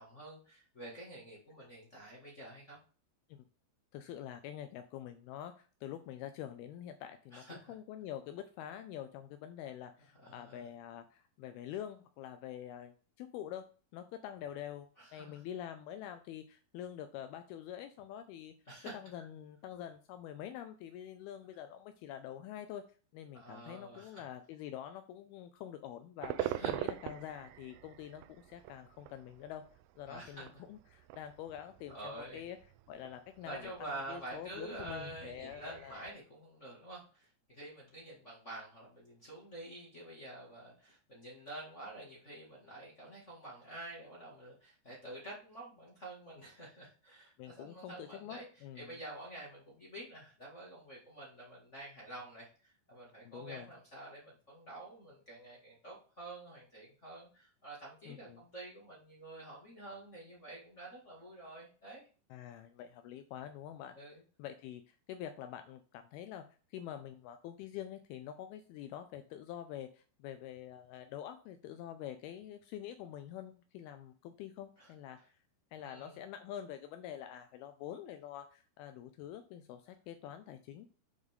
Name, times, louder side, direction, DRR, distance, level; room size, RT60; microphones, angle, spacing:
voice 1, 0.0-2.8 7.3-7.7 10.2-10.7 15.0-15.4 18.7-18.9 23.3-24.2 26.4-26.7 30.1-30.4 31.9-32.4 33.4-48.5 48.7-62.0 63.9-64.2 74.8-74.9 75.8-76.2, right 1 dB, 45° left, -5 dB, 0.9 m, -48 dB
voice 2, 3.9-13.6 13.9-18.5 18.9-22.8 23.1-26.4 26.6-29.6 30.0-32.6 32.9-36.1 47.4-49.0 53.3-53.7 58.1-58.4 62.3-64.0 64.4-66.4 66.7-75.2 75.7-80.9, left 10 dB, 80° left, 8 dB, 2.3 m, -46 dB
sound 1, 26.2-36.1, right 14 dB, 90° right, 2.8 m, -44 dB
8.0 x 5.1 x 3.6 m, 0.38 s
omnidirectional pair, 4.9 m